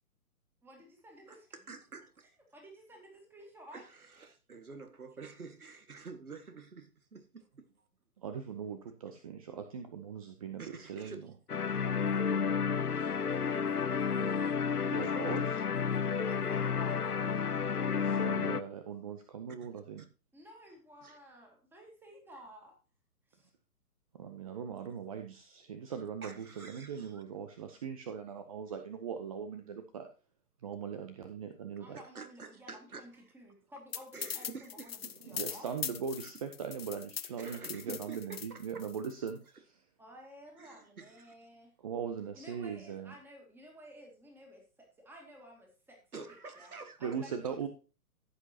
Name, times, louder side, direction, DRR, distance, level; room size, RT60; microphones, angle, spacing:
voice 1, 0.6-1.5 2.5-3.8 12.0-14.6 16.2-17.3 20.3-22.7 23.3-23.5 31.8-35.7 40.0-41.7 42.3-46.2 46.6-46.7 47.0-47.6, equal, 5° right, 2.3 m, -54 dB
voice 2, 1.3-2.3 3.7-7.7 10.6-11.3 14.1-14.3 14.9-15.6 16.1-16.2 19.6-19.7 21.0-21.2 26.2-27.2 31.9-33.1 34.1-35.3 36.2-36.3 37.4-38.8 40.6-41.1 46.1-47.2, right 4 dB, 70° right, 1.9 m, -48 dB
voice 3, 8.2-11.3 14.9-15.4 18.0-20.0 24.1-30.1 30.6-32.0 35.3-39.7 41.8-43.1 47.0-47.7, right 7 dB, 25° right, 0.7 m, -40 dB
sound 1, 11.5-18.6, left 6 dB, 80° left, 0.9 m, -31 dB
sound 2, 33.9-39.3, left 8 dB, 40° left, 0.7 m, -41 dB
14.0 x 8.1 x 2.8 m
figure-of-eight pair, 130°, 45 cm